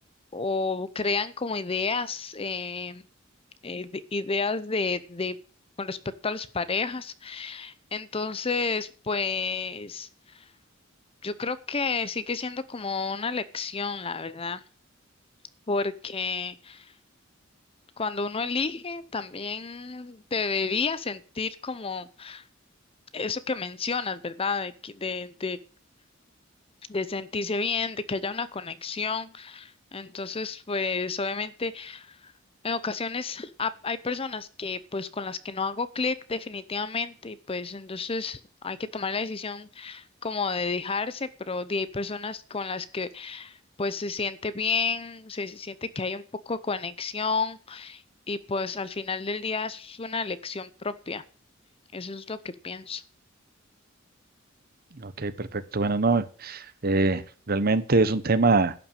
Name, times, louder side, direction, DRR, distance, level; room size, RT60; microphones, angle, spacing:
voice 1, 0.3-3.0 3.6-5.4 5.8-6.0 6.2-10.5 11.2-14.6 15.7-16.9 18.0-22.4 23.1-25.6 26.9-32.3 32.6-48.0 48.3-51.2 51.9-53.0, left 4 dB, 30° left, 15 dB, 0.7 m, -31 dB
voice 2, 55.0-58.7, right 3 dB, 50° right, 14 dB, 0.9 m, -24 dB
11.5 x 5.9 x 9.0 m, 0.40 s
head